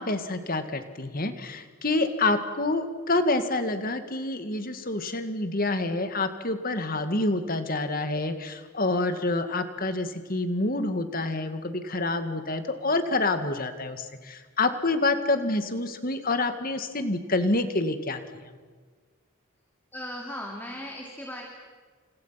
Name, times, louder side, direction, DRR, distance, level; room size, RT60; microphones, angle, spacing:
voice 1, 0.0-18.4, left 2 dB, 40° left, 8 dB, 2.2 m, -27 dB
voice 2, 19.9-21.5, left 1 dB, 10° left, 0 dB, 2.9 m, -37 dB
30.0 x 29.5 x 6.0 m, 1.5 s
head